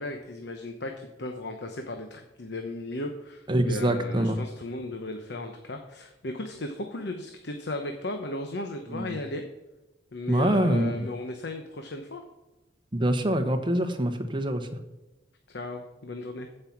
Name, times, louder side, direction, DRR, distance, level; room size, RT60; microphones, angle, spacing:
voice 1, 0.0-9.4 10.1-12.2 15.5-16.5, left 2 dB, 65° left, 5 dB, 0.9 m, -36 dB
voice 2, 3.5-4.4 8.9-9.2 10.3-10.9 12.9-14.7, right 1 dB, 25° right, 7 dB, 1.1 m, -25 dB
15.0 x 5.6 x 6.0 m, 1.1 s
head